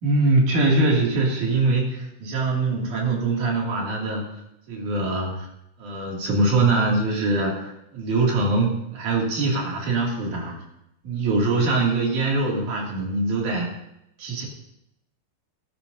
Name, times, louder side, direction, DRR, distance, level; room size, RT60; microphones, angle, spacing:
voice 1, 0.0-4.4 4.7-5.5 5.8-10.6 11.0-13.7 14.2-14.5, right 2 dB, 50° right, -2 dB, 3.8 m, -23 dB
17.0 x 13.0 x 2.7 m, 0.83 s
omnidirectional pair, 4.7 m